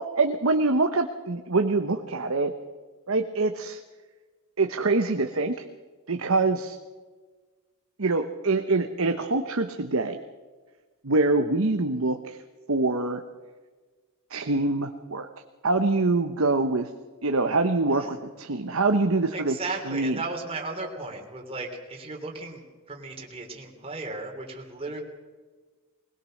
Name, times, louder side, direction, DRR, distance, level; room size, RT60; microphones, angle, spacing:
voice 1, 0.0-2.5 3.1-3.8 4.6-5.6 6.1-6.8 8.0-10.2 11.0-12.4 12.7-13.2 14.3-15.3 15.6-16.9 17.2-19.5 19.9-20.2, right 3 dB, 65° right, 6 dB, 1.1 m, -24 dB
voice 2, 17.8-18.2 19.3-25.0, right 3 dB, 25° right, 1 dB, 3.4 m, -36 dB
21.0 x 20.0 x 6.6 m, 1.4 s
head